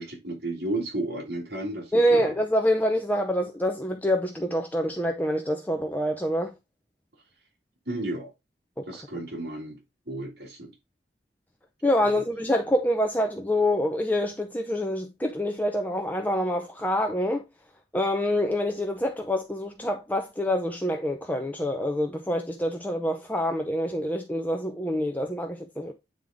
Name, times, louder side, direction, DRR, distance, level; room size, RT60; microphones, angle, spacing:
voice 1, 0.0-2.3 7.9-8.3 8.9-9.8 10.1-10.7 12.1-12.2, right 1 dB, 65° right, 2.4 m, -33 dB
voice 2, 1.9-6.5 11.8-17.4 17.9-25.9, equal, 10° left, 0.6 m, -26 dB
9.0 x 3.7 x 3.6 m
head